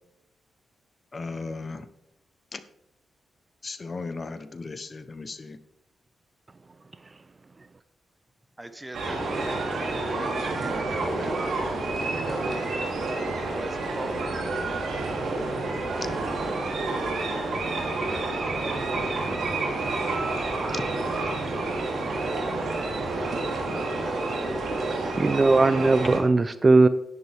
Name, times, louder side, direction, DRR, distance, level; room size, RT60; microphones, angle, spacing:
voice 1, 1.1-1.9 2.5-2.6 3.6-5.6 20.7-20.8, left 3 dB, 40° left, 11 dB, 0.9 m, -36 dB
voice 2, 8.6-12.7 13.4-15.0 15.9-16.1 16.4-16.9 17.8-19.3 21.1-25.2, right 1 dB, 15° right, 9 dB, 1.2 m, -42 dB
sound 1, 8.9-26.2, right 2 dB, 70° right, 3.0 m, -29 dB
voice 3, 25.2-26.9, right 3 dB, 30° right, 13 dB, 0.5 m, -19 dB
11.0 x 10.5 x 3.5 m, 0.84 s
cardioid pair, 80°, 0 cm